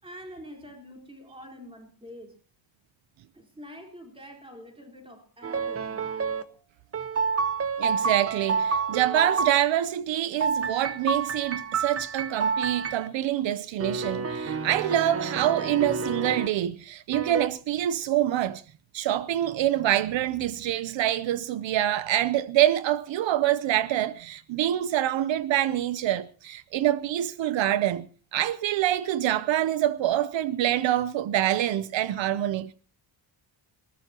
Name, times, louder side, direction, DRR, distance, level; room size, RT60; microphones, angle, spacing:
voice 1, 0.0-2.4 3.3-6.1, equal, 10° right, 4.1 m, -46 dB
sound 1, 5.4-6.4 6.9-9.6 10.4-13.1 13.8-16.5 17.1-17.5, right 5 dB, 30° right, 1.0 m, -29 dB
voice 2, 7.8-18.6 18.9-28.1 28.3-32.7, right 12 dB, 75° right, 0.8 m, -26 dB
20.5 x 19.0 x 2.9 m
wide cardioid pair, 165°, 46 cm